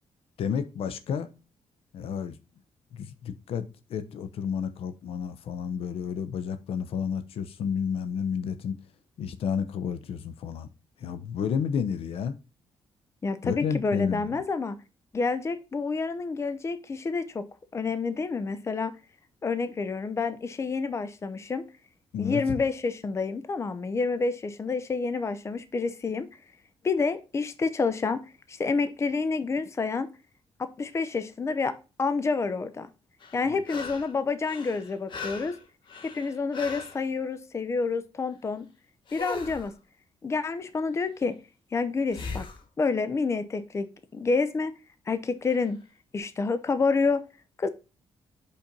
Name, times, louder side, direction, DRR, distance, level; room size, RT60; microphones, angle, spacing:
voice 1, 0.4-1.3 1.9-2.4 2.9-8.8 9.2-10.7 11.0-12.4 13.4-14.3 22.1-22.4 33.5-33.6, left 7 dB, 70° left, 0.8 m, -31 dB
voice 2, 13.2-14.8 15.1-17.5 17.7-18.9 19.4-21.6 22.2-26.3 26.8-30.1 30.6-31.7 32.0-32.9 33.3-35.5 36.0-38.7 39.1-39.7 40.2-41.4 41.7-42.4 42.8-44.7 45.1-45.8 46.1-47.2 47.6-47.7, left 4 dB, 30° left, 0.7 m, -28 dB
sound 1, 33.2-34.1 34.4-37.0 39.1-39.7 42.1-42.6 45.5-45.6, left 4 dB, 55° left, 1.5 m, -39 dB
5.5 x 4.3 x 5.2 m
cardioid pair, 115°, 10 cm